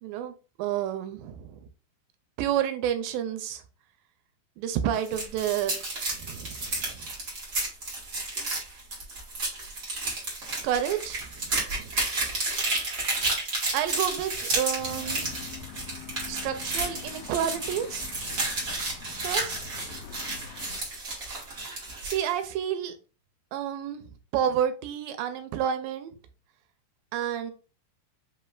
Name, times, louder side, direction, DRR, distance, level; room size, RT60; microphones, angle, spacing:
voice 1, 0.0-1.7 2.4-3.6 4.6-5.8 6.1-7.1 8.4-8.5 10.6-11.9 12.5-12.6 13.7-15.4 16.3-18.7 19.2-19.6 22.0-23.0 23.5-24.0 24.3-26.1 27.1-27.5, right 10 dB, 80° right, 2.3 m, -30 dB
sound 1, 4.9-22.3, right 2 dB, 55° right, 0.9 m, -32 dB
sound 2, 14.8-20.8, left 8 dB, 90° left, 1.7 m, -44 dB
5.5 x 3.2 x 2.3 m
omnidirectional pair, 4.3 m